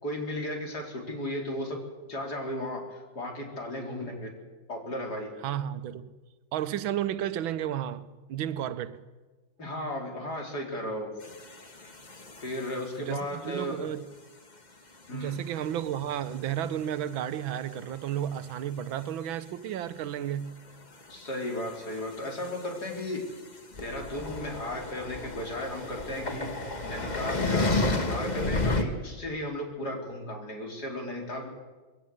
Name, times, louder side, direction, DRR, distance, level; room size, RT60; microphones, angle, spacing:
voice 1, 0.0-1.8 2.0-4.3 4.7-5.3 9.6-11.1 12.4-13.8 15.1-15.4 21.1-23.2 23.8-26.5 26.8-31.5, left 1 dB, 55° left, 4.5 m, -35 dB
voice 2, 5.4-6.1 6.5-9.0 13.0-14.0 15.1-20.5, right 10 dB, 90° right, 1.7 m, -32 dB
sound 1, 11.2-12.9 15.2-16.3 16.6-17.1 17.4-17.7 18.1-18.2 18.5-18.6 20.7-28.8, left 2 dB, 25° left, 1.4 m, -33 dB
21.5 x 17.0 x 7.9 m
omnidirectional pair, 2.1 m